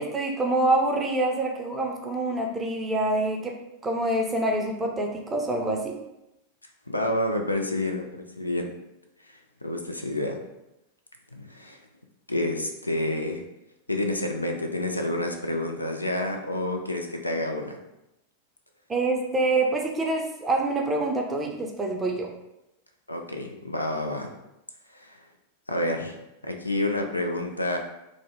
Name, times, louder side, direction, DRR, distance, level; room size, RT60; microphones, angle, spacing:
voice 1, 0.0-3.6 3.8-6.0 18.9-22.3, right 2 dB, 15° right, 1 dB, 0.5 m, -26 dB
voice 2, 6.9-8.7 9.3-10.4 11.3-11.8 12.3-13.4 13.9-17.8 23.1-24.3 24.9-25.2 25.7-26.2 26.4-27.8, left 1 dB, 85° left, 4 dB, 0.3 m, -29 dB
2.5 x 2.1 x 3.6 m, 0.89 s
figure-of-eight pair, 90°, 0 cm